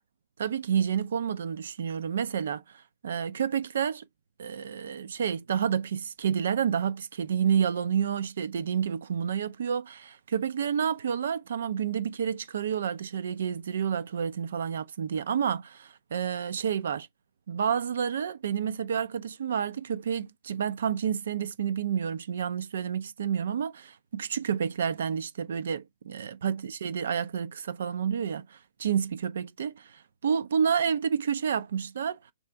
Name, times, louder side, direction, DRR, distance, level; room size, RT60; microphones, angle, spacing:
voice 1, 0.4-4.1 4.4-17.1 17.5-32.2, right 7 dB, 60° right, 0.4 m, -29 dB
3.3 x 2.7 x 4.5 m
figure-of-eight pair, 125°, 0 cm